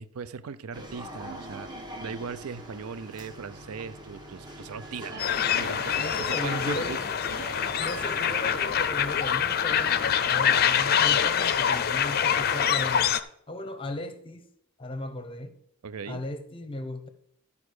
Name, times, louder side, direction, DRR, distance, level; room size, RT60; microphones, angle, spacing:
voice 1, 0.0-5.3 5.5-7.0 15.8-16.2, right 5 dB, 90° right, 0.5 m, -38 dB
sound 1, 0.7-8.9, right 1 dB, 20° right, 1.2 m, -42 dB
sound 2, 5.2-13.2, left 8 dB, 45° left, 0.5 m, -25 dB
voice 2, 6.0-7.1 7.8-13.2 13.5-14.5 14.8-15.6 16.1-17.1, left 1 dB, 25° left, 0.9 m, -36 dB
13.0 x 5.0 x 4.8 m
head